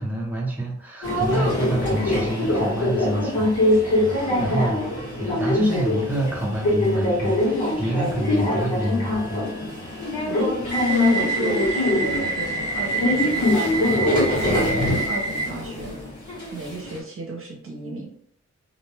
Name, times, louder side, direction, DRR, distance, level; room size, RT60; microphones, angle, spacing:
voice 1, 0.0-4.1 4.4-4.8 5.2-9.4, right 1 dB, 5° right, -3 dB, 0.7 m, -27 dB
Subway metro underground, 1.0-17.0, left 1 dB, 80° left, 1.2 m, -23 dB
voice 2, 10.9-13.9 14.4-16.0 16.5-18.1, right 2 dB, 50° right, -1 dB, 0.7 m, -32 dB
2.6 x 2.1 x 3.2 m, 0.65 s
wide cardioid pair, 105°, 29 cm